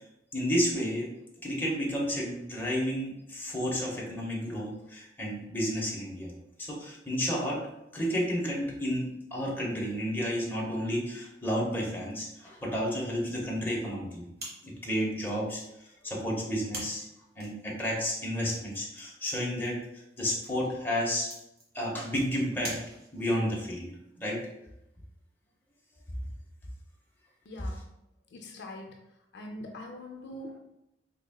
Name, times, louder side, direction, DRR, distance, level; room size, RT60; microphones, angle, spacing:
voice 1, 0.3-1.1 1.4-6.3 6.6-7.7 7.9-9.1 9.3-14.3 14.6-17.1 17.4-21.3 21.7-22.8 23.1-23.9 24.2-24.5, equal, 10° left, -4 dB, 0.8 m, -31 dB
sound 1, 14.4-23.4, right 1 dB, 55° right, 1.1 m, -47 dB
voice 2, 27.5-27.8 28.3-29.0 29.3-30.6, left 1 dB, 60° left, 3 dB, 0.5 m, -42 dB
3.9 x 3.4 x 2.2 m, 0.85 s
head